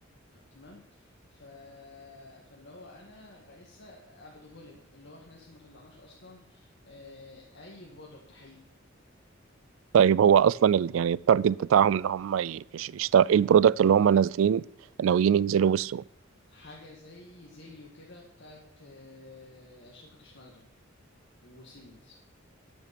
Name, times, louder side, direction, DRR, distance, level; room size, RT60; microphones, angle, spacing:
voice 1, 0.3-8.6 16.5-20.6 21.4-22.2, left 2 dB, 60° left, 1.9 m, -51 dB
voice 2, 9.9-14.6 15.0-16.0, right 8 dB, 75° right, 0.3 m, -22 dB
12.5 x 6.9 x 6.0 m
head